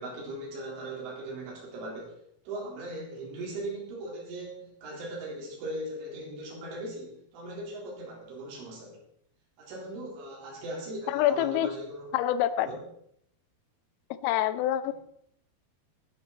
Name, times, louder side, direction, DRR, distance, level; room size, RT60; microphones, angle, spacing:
voice 1, 0.0-2.1 2.5-9.0 9.6-12.1 12.6-12.8 14.9-15.0, right 1 dB, 70° right, -4 dB, 6.2 m, -39 dB
voice 2, 11.1-11.7 12.1-12.7 14.2-14.9, left 12 dB, 90° left, 12 dB, 3.4 m, -26 dB
18.5 x 8.8 x 4.0 m, 0.70 s
omnidirectional pair, 5.8 m